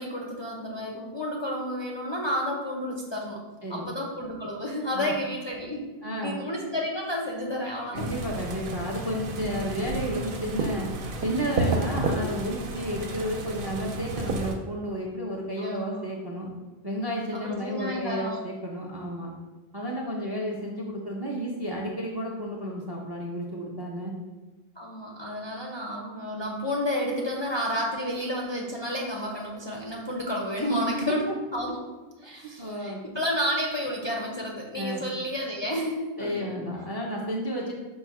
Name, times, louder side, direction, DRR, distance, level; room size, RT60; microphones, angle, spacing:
voice 1, 0.0-3.4 3.7-5.9 6.2-8.1 15.6-16.0 17.3-18.4 24.8-31.2 31.5-31.8 32.2-36.6, equal, 45° left, -2 dB, 0.4 m, -31 dB
voice 2, 6.0-6.4 7.9-10.9 11.2-16.5 16.8-19.3 19.7-24.1 30.7-30.8 31.1-31.2 32.3-33.0 34.7-35.0 36.2-37.7, equal, 40° right, -1 dB, 0.3 m, -32 dB
sound 1, 8.0-14.6, right 2 dB, 65° right, 0.7 m, -31 dB
5.3 x 2.1 x 4.6 m, 1.3 s
omnidirectional pair, 1.1 m